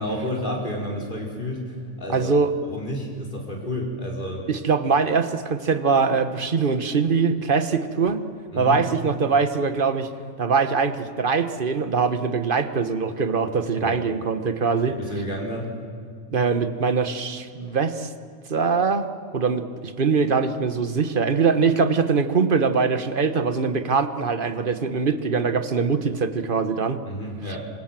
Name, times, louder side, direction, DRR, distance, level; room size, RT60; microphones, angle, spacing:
voice 1, 0.0-2.3 2.7-4.5 8.5-8.8 13.8-14.0 14.9-15.7 27.1-27.7, left 1 dB, 35° left, -1 dB, 5.3 m, -30 dB
voice 2, 2.1-2.5 4.5-8.3 8.6-10.1 10.4-15.0 16.3-18.1 18.5-19.1 19.3-27.0, right 5 dB, 40° right, 10 dB, 1.5 m, -22 dB
27.5 x 25.5 x 7.6 m, 2.2 s
omnidirectional pair, 1.5 m